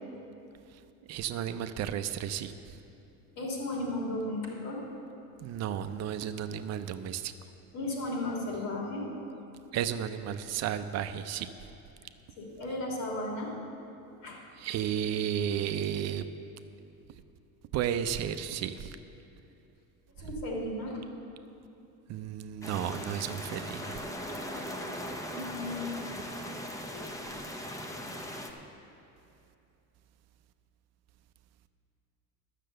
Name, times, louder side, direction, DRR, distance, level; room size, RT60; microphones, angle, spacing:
voice 1, 1.1-2.5 5.4-7.3 9.7-11.5 14.6-16.3 17.7-19.0 22.1-24.0, right 9 dB, 50° right, 10 dB, 0.5 m, -33 dB
voice 2, 3.4-4.8 7.7-9.1 12.4-13.5 14.2-14.4 20.2-21.0 25.3-25.9 26.9-27.0, left 1 dB, 65° left, -2 dB, 3.3 m, -35 dB
sound 1, 22.6-28.5, equal, 10° left, 0.7 m, -39 dB
12.0 x 6.6 x 7.7 m, 2.8 s
cardioid pair, 145°, 35 cm